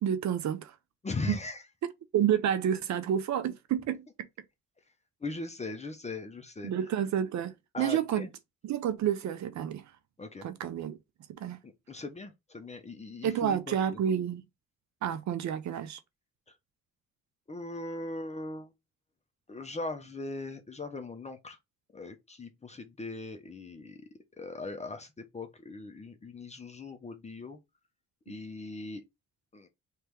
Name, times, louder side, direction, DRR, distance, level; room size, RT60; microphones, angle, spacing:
voice 1, 0.0-0.7 1.3-1.4 2.1-4.0 6.6-8.3 8.6-9.8 10.4-11.0 11.4-11.6 13.2-14.4 15.0-16.0, right 9 dB, 65° right, 0.7 m, -29 dB
voice 2, 1.0-1.6 5.2-6.7 7.7-8.3 10.2-10.5 11.6-14.0 17.5-18.7 19.5-21.6 21.9-24.0 24.4-27.6 28.3-29.0 29.5-29.7, left 3 dB, 20° left, 0.9 m, -39 dB
3.3 x 3.3 x 4.6 m
cardioid pair, 90°, 30 cm